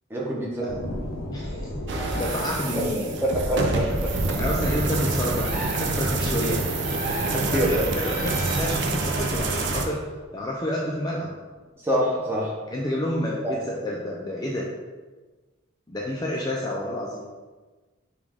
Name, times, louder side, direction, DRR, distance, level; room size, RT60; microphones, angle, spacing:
voice 1, 0.1-0.7 2.7-4.1 7.3-7.9 11.8-12.5, equal, 10° right, -4 dB, 0.7 m, -25 dB
sound 1, 0.7-11.7 12.2-12.3, left 1 dB, 75° left, 0.6 m, -39 dB
voice 2, 1.3-3.1 4.3-5.5 5.8-6.6 7.5-10.0 10.3-11.3 12.7-14.7 15.9-17.3, left 1 dB, 20° left, -3 dB, 0.3 m, -29 dB
sound 2, 1.9-9.9, right 2 dB, 55° right, 0.4 m, -27 dB
sound 3, 5.3-6.0 6.8-7.5 8.0-8.8, equal, 40° right, 0.9 m, -34 dB
5.2 x 2.3 x 3.4 m, 1.3 s
head